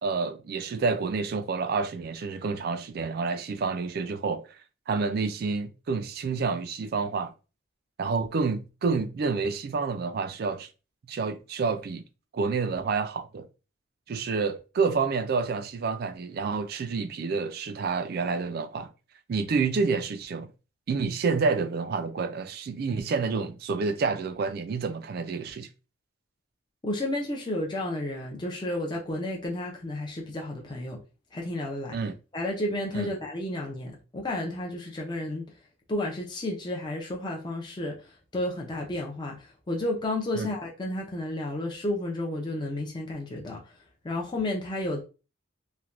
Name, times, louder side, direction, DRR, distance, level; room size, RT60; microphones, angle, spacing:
voice 1, 0.0-4.6 4.9-7.3 8.0-10.7 11.1-12.0 12.3-13.5 14.1-18.9 19.3-20.5 20.9-25.7 31.9-32.2 32.9-33.1 40.3-40.5, right 4 dB, 50° right, 0.3 m, -29 dB
voice 2, 26.8-31.0 31.3-32.0 32.3-35.5 35.9-43.6 44.0-45.0, left 1 dB, 20° left, 0.4 m, -32 dB
3.2 x 2.1 x 2.4 m
head